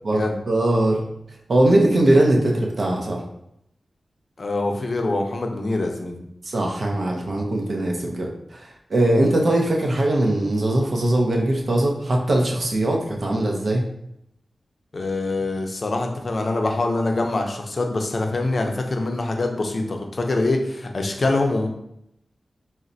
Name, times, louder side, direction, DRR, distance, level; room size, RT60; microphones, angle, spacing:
voice 1, 0.5-1.0 1.5-3.2 6.4-13.8, right 1 dB, 60° right, 0 dB, 0.6 m, -20 dB
voice 2, 4.4-6.2 9.1-9.2 14.9-21.7, left 2 dB, 50° left, 3 dB, 0.5 m, -24 dB
4.0 x 2.1 x 2.6 m, 0.77 s
wide cardioid pair, 85°, 0 cm